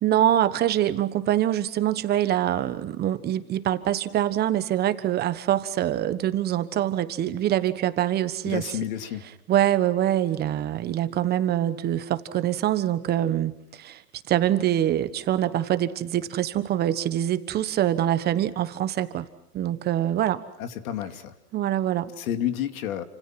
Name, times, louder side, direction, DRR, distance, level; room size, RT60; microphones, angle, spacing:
voice 1, 0.0-8.6 9.5-14.0 14.3-19.3 19.5-20.4 21.5-22.1, right 12 dB, 20° right, 12 dB, 1.2 m, -24 dB
voice 2, 8.4-9.3 20.6-21.3 22.2-23.0, left 10 dB, 60° left, 8 dB, 2.7 m, -30 dB
29.5 x 27.0 x 6.0 m, 0.77 s
hypercardioid pair, 145°, 47 cm